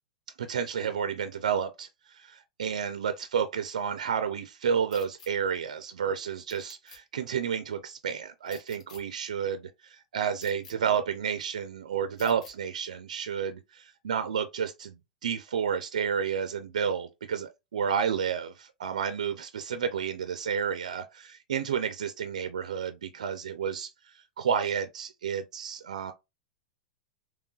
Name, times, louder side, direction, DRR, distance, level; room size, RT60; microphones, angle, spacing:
voice 1, 0.4-15.0 15.2-26.1, right 7 dB, 85° right, 0.4 m, -31 dB
sound 1, 4.9-5.3 6.5-7.0 8.5-9.0 10.4-10.7 12.2-12.5, left 4 dB, 75° left, 0.9 m, -50 dB
3.2 x 2.3 x 2.2 m
hypercardioid pair, 125°, 4 cm